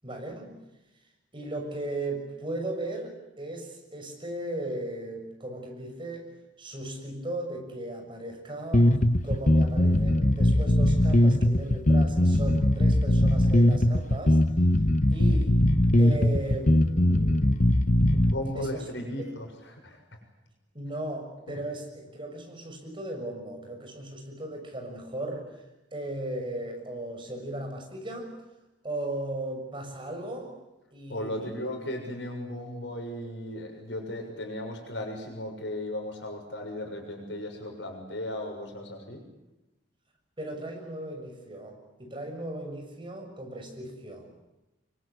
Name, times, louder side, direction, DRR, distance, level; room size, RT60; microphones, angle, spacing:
voice 1, 0.0-0.6 1.3-6.3 6.6-14.4 15.1-15.6 16.0-17.6 18.5-18.8 20.7-25.6 25.9-28.3 28.8-30.5 30.9-31.7 40.4-44.3, right 1 dB, 30° right, 3 dB, 6.8 m, -37 dB
sound 1, 8.7-18.3, left 1 dB, 45° left, 1.4 m, -21 dB
voice 2, 18.1-19.5 19.7-20.0 21.5-21.6 31.1-39.2, left 1 dB, 75° left, 2 dB, 6.8 m, -36 dB
26.0 x 24.0 x 8.4 m, 0.97 s
head